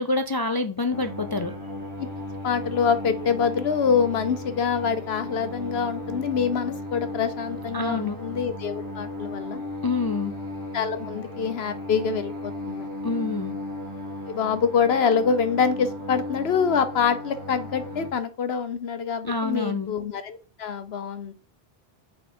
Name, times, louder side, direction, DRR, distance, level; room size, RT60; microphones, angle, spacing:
voice 1, 0.0-1.6 7.7-8.2 9.8-10.3 13.0-13.5 19.2-19.9, left 3 dB, 40° left, 0.3 m, -26 dB
sound 1, 0.9-18.1, left 1 dB, 30° right, 2.3 m, -35 dB
voice 2, 2.4-9.6 10.7-12.9 14.3-21.3, left 6 dB, 80° left, 1.1 m, -25 dB
8.5 x 3.9 x 4.3 m
omnidirectional pair, 1.0 m